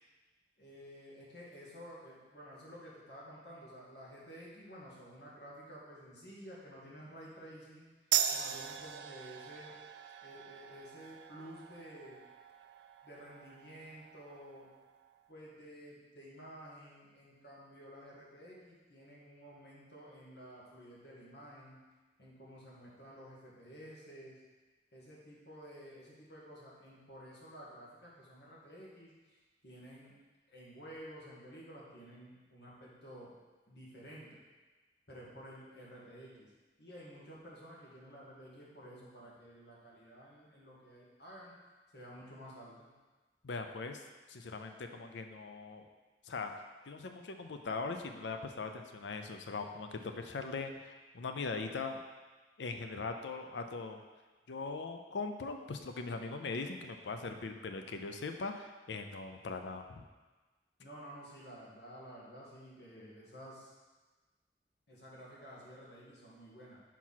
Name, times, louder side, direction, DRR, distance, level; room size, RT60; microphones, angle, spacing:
voice 1, 0.6-7.9 8.3-9.7 10.2-12.2 13.0-14.7 15.3-21.8 22.2-24.4 24.9-30.1 30.5-33.3 33.7-34.4 35.1-36.5 36.8-41.5 41.9-42.9 60.8-63.7 64.9-66.8, equal, 65° left, -6 dB, 2.0 m, -52 dB
sound 1, 8.1-15.2, right 10 dB, 70° right, 0.4 m, -39 dB
voice 2, 43.4-44.0 44.3-45.9 46.2-46.5 46.9-52.0 52.6-54.0 54.5-60.0, left 4 dB, 85° left, 6 dB, 0.5 m, -40 dB
5.8 x 4.6 x 5.7 m, 1.3 s
head